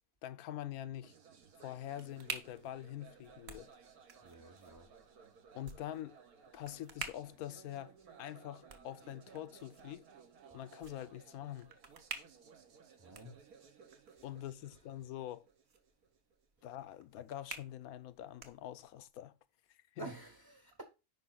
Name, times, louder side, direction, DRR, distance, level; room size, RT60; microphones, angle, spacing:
voice 1, 0.2-1.1 1.6-3.7 5.5-6.2 6.5-7.9 8.2-10.0 10.5-11.7 13.2-13.3 14.2-15.4 16.6-19.3 19.7-20.1, left 12 dB, 80° left, 1.1 m, -45 dB
sound 1, 1.0-16.9, right 6 dB, 75° right, 1.6 m, -60 dB
sound 2, 1.4-19.1, right 4 dB, 50° right, 1.2 m, -52 dB
voice 2, 4.2-4.9 13.0-13.4 14.7-14.8 20.0-20.8, right 3 dB, 25° right, 0.6 m, -49 dB
9.2 x 5.2 x 3.9 m
omnidirectional pair, 1.6 m